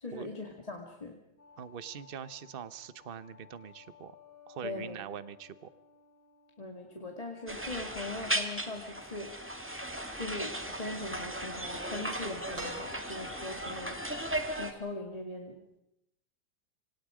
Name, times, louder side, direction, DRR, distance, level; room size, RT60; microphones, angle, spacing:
voice 1, 0.0-1.2 4.6-5.0 6.6-9.6 10.2-14.2 14.6-15.6, left 2 dB, 20° left, 1 dB, 2.2 m, -41 dB
sound 1, 1.4-9.5, left 8 dB, 45° left, 3.8 m, -58 dB
voice 2, 1.6-4.2 4.5-5.7, right 8 dB, 40° right, 14 dB, 0.8 m, -43 dB
sound 2, 7.5-14.7, right 1 dB, 5° right, 1.7 m, -36 dB
sound 3, 12.5-13.6 15.1-15.2, right 2 dB, 65° right, 8.0 m, -44 dB
27.5 x 26.0 x 5.0 m, 0.83 s
omnidirectional pair, 2.1 m